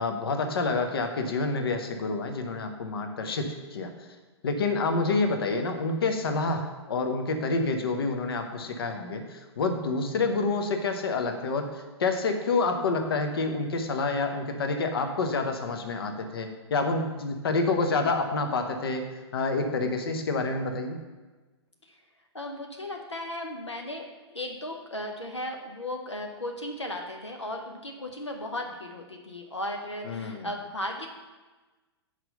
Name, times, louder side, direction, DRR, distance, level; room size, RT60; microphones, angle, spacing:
voice 1, 0.0-3.9 4.4-19.1 19.3-21.0 30.0-30.5, left 3 dB, 55° left, 6 dB, 0.9 m, -28 dB
voice 2, 22.3-24.0 24.3-31.1, left 1 dB, 85° left, 2 dB, 0.8 m, -36 dB
5.9 x 5.0 x 6.7 m, 1.2 s
figure-of-eight pair, 110°, 14 cm